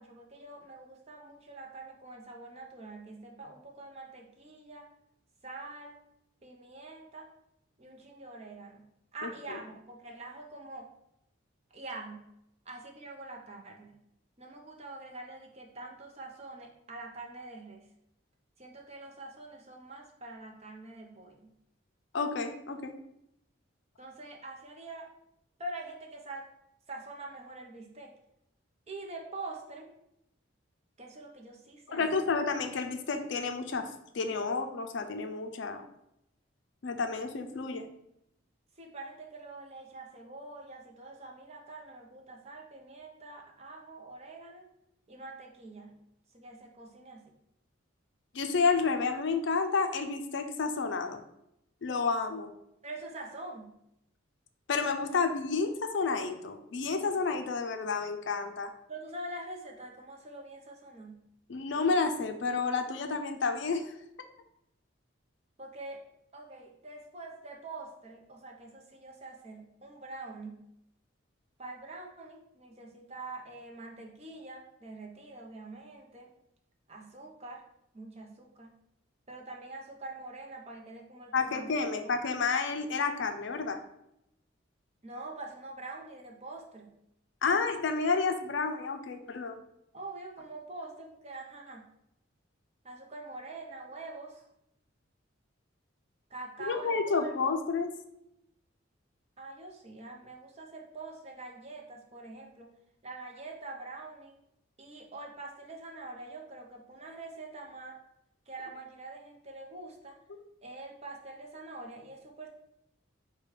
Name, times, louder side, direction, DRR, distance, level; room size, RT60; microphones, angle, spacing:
voice 1, 0.0-4.9 5.4-6.0 6.4-7.3 7.8-10.9 11.7-12.3 12.7-14.0 14.4-17.9 18.6-21.5 24.0-25.1 25.6-26.5 26.9-28.1 28.9-29.9 31.0-32.4 38.8-44.7 45.1-46.0 46.3-47.3 52.8-53.8 58.9-61.3 65.6-66.0 66.3-70.6 71.6-76.3 76.9-77.6 77.9-78.8 79.3-82.1 85.0-87.0 89.9-91.9 92.8-94.5 96.3-97.6 99.4-102.7 103.0-104.4 104.8-108.0 108.5-110.2 110.6-112.5, right 2 dB, 30° right, 1 dB, 0.6 m, -45 dB
voice 2, 9.2-9.6 22.1-22.9 31.9-33.9 34.1-35.8 36.8-37.9 48.3-51.2 51.8-52.5 54.7-58.7 61.5-63.9 81.3-83.8 87.4-89.6 96.6-97.9, left 4 dB, 60° left, 6 dB, 0.5 m, -30 dB
4.9 x 2.2 x 4.7 m, 0.82 s
head